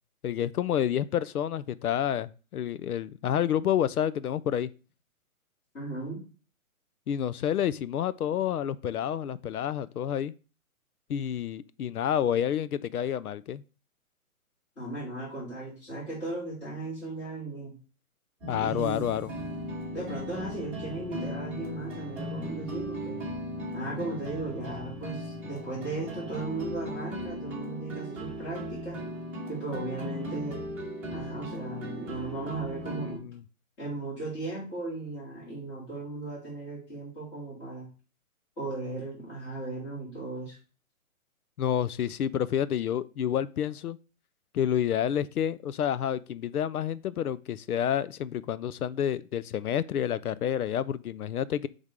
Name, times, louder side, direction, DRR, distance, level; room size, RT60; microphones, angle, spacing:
voice 1, 0.2-4.7 7.1-10.3 11.1-13.6 18.5-19.3 33.2-33.4 41.6-44.0 44.5-51.7, left 10 dB, 80° left, 0.6 m, -29 dB
voice 2, 5.7-6.2 14.8-17.7 18.6-19.2 19.9-23.2 23.7-29.0 29.5-30.6 31.1-33.2 33.8-37.9 38.6-40.6, right 2 dB, 20° left, 3.8 m, -36 dB
sound 1, 18.4-33.2, equal, 5° right, 1.4 m, -37 dB
10.5 x 3.6 x 3.6 m
hypercardioid pair, 160°, 43 cm